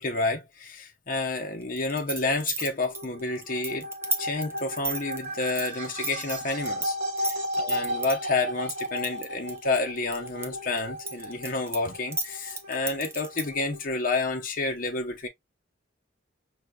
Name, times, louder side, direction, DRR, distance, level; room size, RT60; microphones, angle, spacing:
voice 1, 0.0-3.9 4.2-6.9 7.2-15.3, left 3 dB, 45° left, 0.8 m, -30 dB
sound 1, 1.8-6.9 7.2-8.1 8.7-10.5 10.8-13.6, right 3 dB, 10° right, 0.5 m, -33 dB
sound 2, 2.8-14.1, equal, 60° right, 1.3 m, -35 dB
4.9 x 2.7 x 2.2 m
head